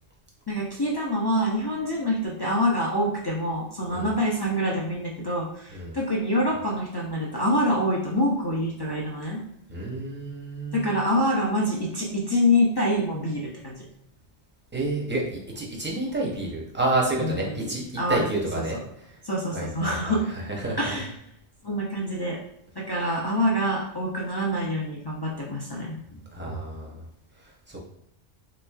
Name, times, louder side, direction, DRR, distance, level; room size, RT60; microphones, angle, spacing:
voice 1, 0.5-9.4 10.7-13.8 17.2-18.2 19.2-20.2 20.8-21.1 21.6-22.4 22.8-26.6, equal, 40° left, -4 dB, 0.3 m, -26 dB
voice 2, 9.7-11.0 14.7-17.8 18.1-18.8 19.1-19.2 19.5-21.0 26.3-27.1 27.4-27.8, right 2 dB, 15° right, -3 dB, 0.5 m, -29 dB
3.4 x 3.0 x 2.3 m, 0.80 s
omnidirectional pair, 1.2 m